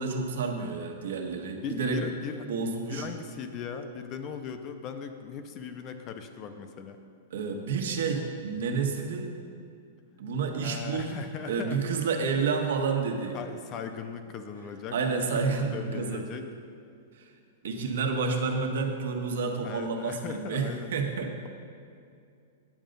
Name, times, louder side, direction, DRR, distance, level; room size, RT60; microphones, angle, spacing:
voice 1, 0.0-2.0 2.5-3.1 7.3-9.3 10.2-11.2 11.5-13.4 14.9-16.2 17.6-21.5, right 5 dB, 75° right, 3 dB, 1.3 m, -30 dB
voice 2, 1.6-2.5 2.8-7.0 10.6-12.0 13.3-15.0 15.4-16.5 19.6-20.9, left 6 dB, 20° left, 7 dB, 0.4 m, -38 dB
9.3 x 7.8 x 5.3 m, 2.4 s
supercardioid pair, 180°, 0 cm